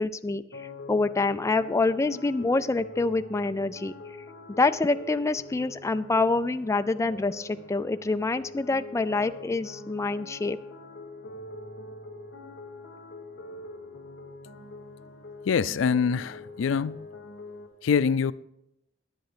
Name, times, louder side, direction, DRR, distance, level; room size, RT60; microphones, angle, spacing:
voice 1, 0.0-3.9 4.6-10.6, left 3 dB, 15° left, 0.3 m, -26 dB
sound 1, 0.5-17.7, left 2 dB, 65° left, 2.0 m, -43 dB
voice 2, 15.5-17.1 17.8-18.3, left 6 dB, 90° left, 0.4 m, -24 dB
10.5 x 9.9 x 5.0 m
head